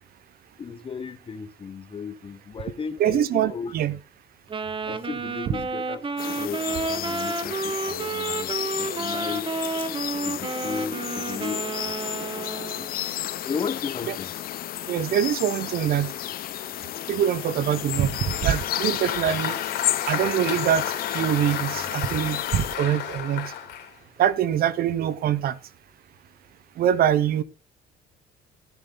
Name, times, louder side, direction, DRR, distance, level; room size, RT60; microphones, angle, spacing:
voice 1, 0.6-3.7 4.8-12.5 12.8-14.3, left 6 dB, 30° left, 1.3 m, -36 dB
voice 2, 3.0-4.0 14.1-14.2 14.9-16.1 17.1-19.6 20.1-20.8 21.1-23.5 24.2-25.6 26.8-27.4, right 10 dB, 65° right, 1.0 m, -24 dB
Wind instrument woodwind instrument, 4.5-13.0, right 4 dB, 30° right, 1.3 m, -31 dB
sound 1, 6.2-22.8, left 13 dB, 60° left, 0.8 m, -32 dB
Applause, 17.9-23.9, left 10 dB, 80° left, 3.6 m, -32 dB
15.0 x 7.1 x 4.0 m
cardioid pair, 110°, 17 cm